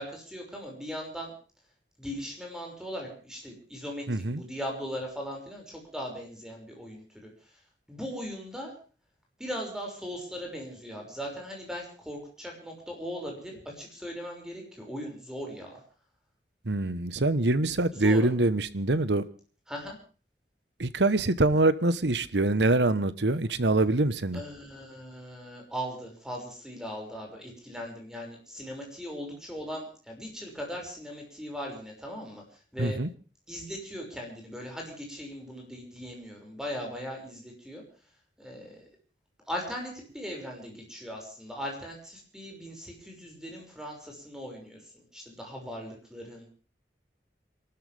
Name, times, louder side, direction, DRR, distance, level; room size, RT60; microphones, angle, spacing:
voice 1, 0.0-1.3 2.0-7.5 7.9-8.7 9.4-15.8 17.9-18.3 19.7-20.0 24.3-33.0 33.5-37.8 38.4-38.8 39.5-46.5, equal, 5° right, 6.1 m, -39 dB
voice 2, 4.1-4.4 16.6-19.2 20.8-24.4 32.8-33.1, right 2 dB, 80° right, 1.2 m, -24 dB
28.0 x 13.0 x 3.5 m
head